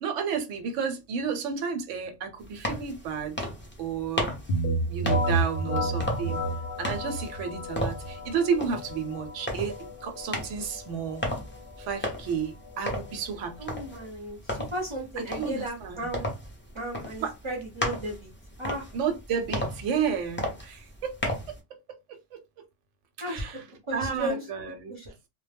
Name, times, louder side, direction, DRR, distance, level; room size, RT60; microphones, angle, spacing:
voice 1, 0.0-3.5 3.8-4.3 4.9-6.4 6.8-11.3 11.8-13.8 15.2-16.1 17.2-17.3 18.9-21.2 21.7-22.4 23.3-23.6 23.9-24.9, right 6 dB, 80° right, 1.0 m, -32 dB
sound 1, 2.4-21.6, left 1 dB, 15° left, 0.4 m, -36 dB
sound 2, 4.5-14.1, right 1 dB, 55° left, 0.7 m, -32 dB
voice 2, 13.6-16.3 16.7-18.3 18.6-18.9 23.2-23.6 23.9-24.4 24.9-25.1, right 1 dB, 30° right, 0.6 m, -34 dB
2.1 x 2.0 x 3.3 m
omnidirectional pair, 1.3 m